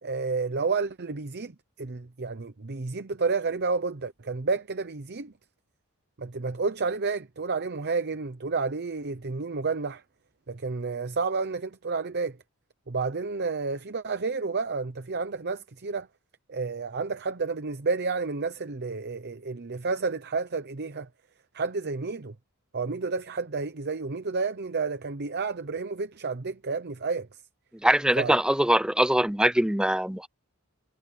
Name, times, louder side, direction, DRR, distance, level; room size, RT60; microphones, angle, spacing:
voice 1, 0.0-1.5 1.8-5.3 6.2-10.0 10.5-12.4 12.9-16.1 16.5-21.1 21.5-22.3 22.7-27.3 28.2-28.4, right 4 dB, 50° right, 0.8 m, -30 dB
voice 2, 27.8-30.3, right 1 dB, 5° right, 0.6 m, -22 dB
head